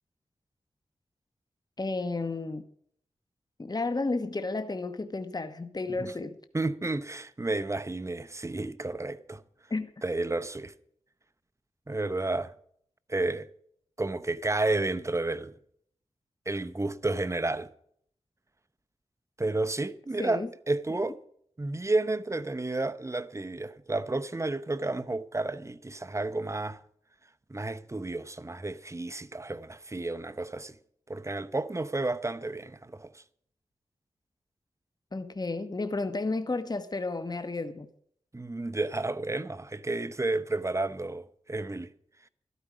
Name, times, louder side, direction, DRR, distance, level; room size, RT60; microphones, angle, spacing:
voice 1, 1.8-2.6 3.6-6.4 9.7-9.9 20.2-20.5 20.9-21.0 35.1-37.9, left 3 dB, 35° left, 1.1 m, -32 dB
voice 2, 6.5-9.4 10.0-10.7 11.9-12.5 13.1-13.5 14.0-15.5 16.5-17.7 19.4-21.1 21.6-26.8 27.5-30.7 31.1-33.2 38.3-41.9, right 2 dB, 25° right, 0.9 m, -31 dB
13.5 x 12.5 x 5.1 m
cardioid pair, 50°, 12 cm